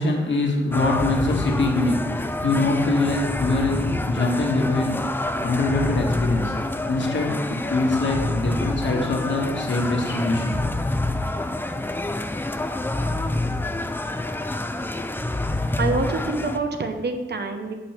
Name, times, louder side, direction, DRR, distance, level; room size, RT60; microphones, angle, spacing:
voice 1, 0.0-5.1 5.4-6.6 6.9-10.6, left 2 dB, 65° left, 0 dB, 1.6 m, -23 dB
sound 1, 0.7-16.6, left 2 dB, 10° left, 0.5 m, -27 dB
voice 2, 15.8-17.7, right 3 dB, 55° right, 5 dB, 0.9 m, -26 dB
8.5 x 5.4 x 5.8 m, 1.3 s
wide cardioid pair, 110°, 21 cm